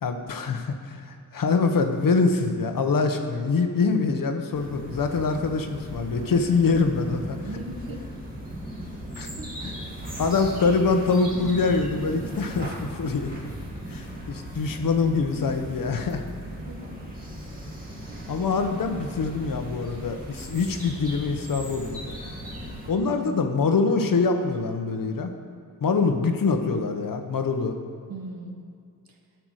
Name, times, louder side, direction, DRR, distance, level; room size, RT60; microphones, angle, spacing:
voice 1, 0.0-7.4 9.1-9.3 9.6-9.7 10.2-13.3 13.9-16.2 18.3-22.0 22.9-25.3 25.8-27.8, left 4 dB, 60° left, 6 dB, 1.1 m, -24 dB
sound 1, 4.5-22.9, equal, 25° right, 2.2 m, -37 dB
voice 2, 7.4-8.2 9.3-9.6 16.5-17.1 18.1-18.4 23.0-23.5 26.0-26.1 28.1-28.7 29.1-29.2, right 2 dB, 65° right, 2 dB, 1.5 m, -40 dB
12.0 x 5.9 x 6.4 m, 2.3 s
wide cardioid pair, 105°, 38 cm